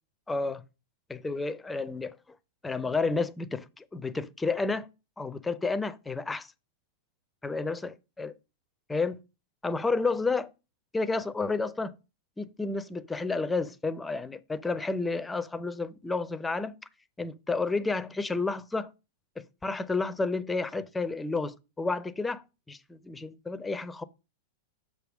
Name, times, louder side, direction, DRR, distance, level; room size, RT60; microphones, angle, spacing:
voice 1, 0.3-0.6 1.1-2.2 2.6-4.9 5.2-6.5 7.4-8.3 8.9-9.2 9.6-10.5 10.9-12.0 12.4-16.7 17.2-18.9 19.4-24.0, left 3 dB, 10° left, 0.5 m, -31 dB
6.4 x 3.5 x 6.0 m
hypercardioid pair, 135°, 0 cm